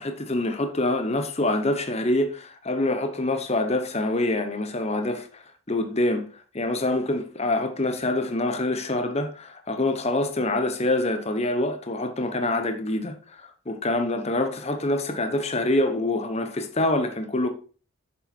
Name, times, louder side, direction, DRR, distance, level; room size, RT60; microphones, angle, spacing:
voice 1, 0.0-5.3 5.7-6.2 6.5-17.5, left 2 dB, 30° left, 1.0 m, -25 dB
7.1 x 6.9 x 4.4 m
head